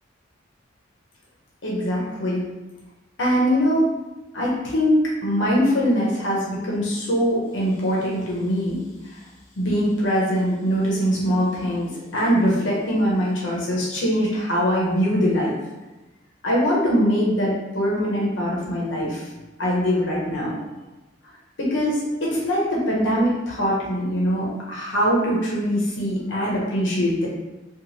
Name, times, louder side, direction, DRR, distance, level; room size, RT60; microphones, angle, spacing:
voice 1, 1.6-2.4 3.2-3.9 4.3-9.2 9.6-15.5 16.4-19.3 19.6-20.6 21.6-27.3, equal, 70° left, -5 dB, 0.7 m, -22 dB
2.9 x 2.3 x 2.6 m, 1.1 s
head